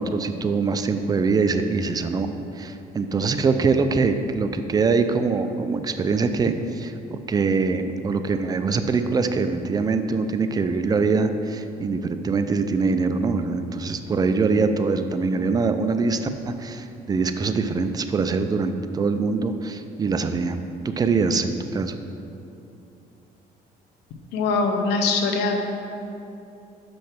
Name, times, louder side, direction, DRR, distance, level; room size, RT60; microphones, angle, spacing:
voice 1, 0.0-2.3 2.5-20.6 20.8-22.0, right 4 dB, 25° right, 9 dB, 0.4 m, -23 dB
voice 2, 24.3-25.7, left 3 dB, 90° left, 4 dB, 0.8 m, -22 dB
5.6 x 5.3 x 5.8 m, 2.8 s
cardioid pair, 110°, 17 cm